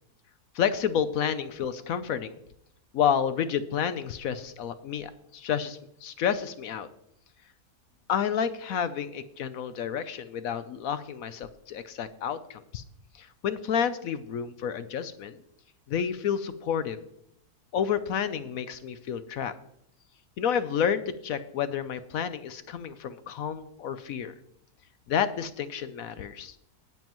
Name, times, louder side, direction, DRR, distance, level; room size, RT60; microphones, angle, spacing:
voice 1, 0.5-2.4 2.9-6.9 8.1-12.8 13.2-15.4 15.9-17.0 17.7-19.5 20.4-24.3 25.1-26.5, left 8 dB, 70° left, 12 dB, 1.0 m, -30 dB
18.5 x 7.3 x 3.0 m, 0.75 s
omnidirectional pair, 1.6 m